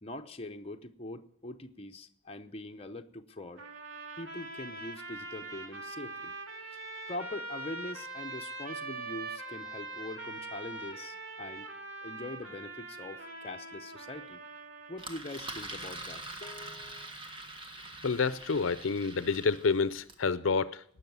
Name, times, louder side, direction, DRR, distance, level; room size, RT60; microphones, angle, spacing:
voice 1, 0.0-3.6 4.2-6.3 6.6-6.8 7.1-11.7 12.0-14.4 14.9-17.1, left 2 dB, 30° left, 5 dB, 0.8 m, -43 dB
sound 1, 3.6-15.1, right 3 dB, 90° right, 2.5 m, -43 dB
Engine, 15.0-20.3, right 2 dB, 25° right, 1.5 m, -44 dB
voice 2, 18.0-20.8, left 4 dB, 80° left, 16 dB, 0.6 m, -28 dB
17.5 x 6.4 x 9.4 m, 0.65 s
head